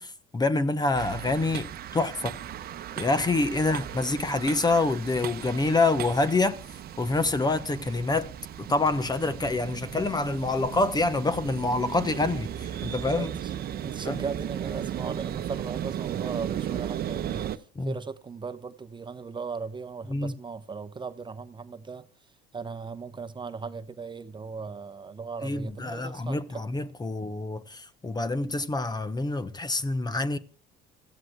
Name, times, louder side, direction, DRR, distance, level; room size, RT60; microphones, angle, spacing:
voice 1, 0.0-2.4 3.0-6.6 7.0-8.3 8.6-13.3 14.1-14.2 17.7-18.0 20.1-20.3 25.4-30.4, left 3 dB, 20° left, 1.0 m, -27 dB
sound 1, 0.9-17.6, right 10 dB, 50° right, 0.9 m, -36 dB
voice 2, 13.1-13.5 13.8-22.1 22.5-26.6, right 5 dB, 25° right, 1.0 m, -38 dB
29.5 x 15.0 x 2.2 m
supercardioid pair, 85°, 20 cm